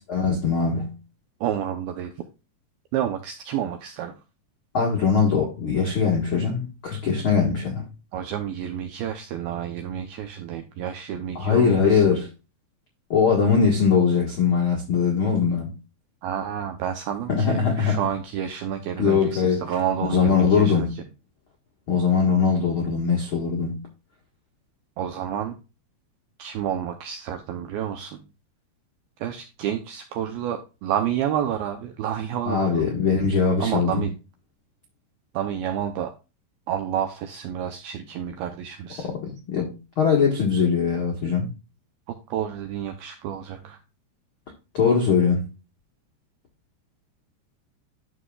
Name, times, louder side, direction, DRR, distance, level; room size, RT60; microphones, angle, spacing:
voice 1, 0.1-0.9 4.7-7.9 11.3-12.3 13.1-15.7 17.3-18.0 19.0-19.6 20.0-20.9 21.9-23.8 32.4-34.1 39.0-41.5 44.7-45.4, left 5 dB, 80° left, 1.1 m, -21 dB
voice 2, 1.4-2.1 2.9-4.2 8.1-12.1 16.2-20.9 25.0-25.6 26.4-28.2 29.2-32.9 33.6-34.1 35.3-36.1 36.7-39.1 42.3-43.8, right 10 dB, 85° right, 2.2 m, -29 dB
11.5 x 6.2 x 2.4 m
omnidirectional pair, 5.2 m